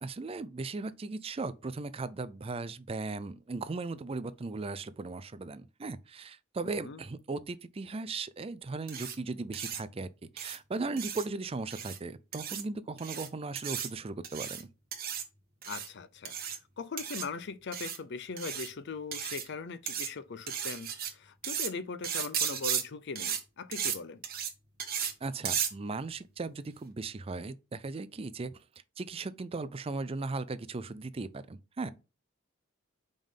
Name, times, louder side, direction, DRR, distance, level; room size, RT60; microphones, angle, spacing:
voice 1, 0.0-14.7 25.2-28.5 29.0-31.9, right 3 dB, 30° right, 0.4 m, -37 dB
voice 2, 6.6-7.0 15.7-16.4 16.8-24.2, left 4 dB, 55° left, 0.5 m, -40 dB
sound 1, 8.9-9.1 9.5-9.8 10.4-10.6 11.0-11.2 11.7-12.0 12.3-12.6 13.0-13.3 13.5-13.9 14.2-14.6 14.9-15.2 15.6-15.9 16.2-16.6 17.0-17.2 17.7-18.0 18.4-18.7 19.1-19.5 19.9-20.1 20.5-21.1 21.4-21.7 22.0-22.8 23.1-23.4 23.7-24.0 24.2-24.5 24.8-25.1 25.4-25.7, right 8 dB, 45° right, 1.2 m, -34 dB
5.3 x 3.7 x 5.5 m
head